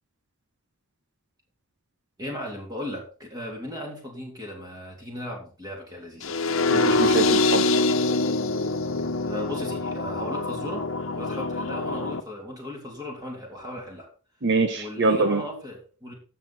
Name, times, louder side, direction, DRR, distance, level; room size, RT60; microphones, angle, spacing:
voice 1, 2.2-6.3 9.2-10.9 11.1-14.1 14.8-16.1, left 1 dB, 20° right, 3.2 m, -36 dB
sound 1, 6.2-12.2, left 3 dB, 70° left, 1.1 m, -24 dB
voice 2, 6.7-7.7 14.4-15.5, right 3 dB, 55° right, 1.2 m, -24 dB
16.0 x 6.7 x 4.3 m
head